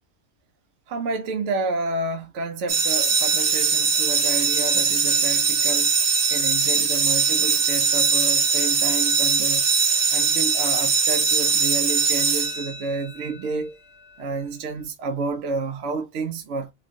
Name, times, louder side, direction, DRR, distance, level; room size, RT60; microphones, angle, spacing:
voice 1, 0.9-5.9 6.3-9.7 10.1-13.8 14.2-16.7, right 3 dB, 70° right, 0.9 m, -30 dB
sound 1, 2.7-13.1, right 5 dB, 85° right, 1.3 m, -21 dB
3.0 x 2.4 x 2.5 m
omnidirectional pair, 1.4 m